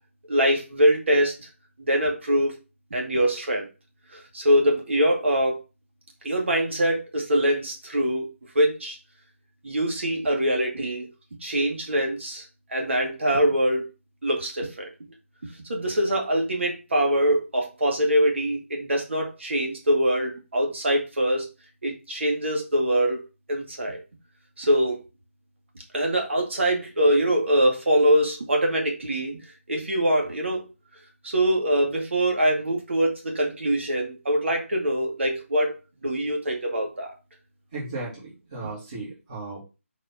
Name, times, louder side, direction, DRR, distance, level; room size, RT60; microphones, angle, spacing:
voice 1, 0.3-1.5 1.8-2.5 2.9-3.7 4.1-5.6 6.2-8.3 8.5-9.0 9.6-11.1 11.4-12.4 12.7-13.8 14.2-14.9 15.7-21.5 21.8-23.2 23.5-24.0 24.6-25.0 25.9-29.4 29.7-30.7 31.2-37.1, equal, 60° right, 1 dB, 2.2 m, -23 dB
voice 2, 37.7-39.6, right 3 dB, 30° right, -8 dB, 2.8 m, -35 dB
4.9 x 4.5 x 5.8 m, 0.30 s
figure-of-eight pair, 170°, 7 cm